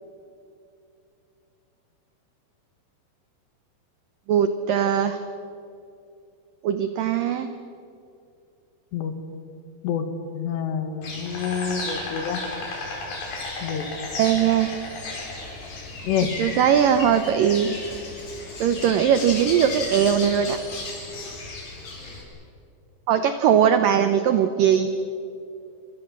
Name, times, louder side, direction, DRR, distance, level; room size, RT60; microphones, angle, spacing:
voice 1, 4.3-5.2 6.6-7.5 14.2-14.7 16.4-17.8 18.6-20.6 23.1-24.9, right 8 dB, 80° right, 9 dB, 1.9 m, -20 dB
voice 2, 10.4-12.4 13.6-13.9 16.0-16.3, left 8 dB, 75° left, 8 dB, 3.8 m, -27 dB
Insect, 11.0-22.2, left 3 dB, 55° left, 6.6 m, -34 dB
29.0 x 24.5 x 7.4 m, 2.6 s
omnidirectional pair, 5.2 m